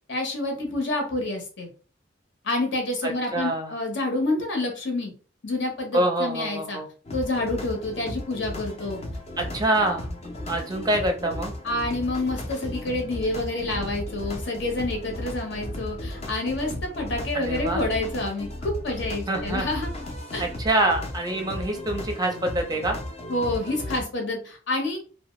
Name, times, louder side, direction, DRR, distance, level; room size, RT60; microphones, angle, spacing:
voice 1, 0.1-1.7 2.4-5.1 5.4-6.8 7.1-9.0 11.6-19.9 20.3-20.4 23.3-25.0, left 2 dB, 65° left, 2 dB, 0.9 m, -28 dB
voice 2, 3.0-3.7 5.9-6.9 9.4-10.1 10.5-11.5 17.3-17.8 19.3-19.7 20.4-23.0, right 1 dB, 20° right, 4 dB, 0.5 m, -25 dB
sound 1, 7.1-24.0, left 1 dB, 35° left, 0.6 m, -35 dB
2.7 x 2.2 x 3.0 m, 0.38 s
head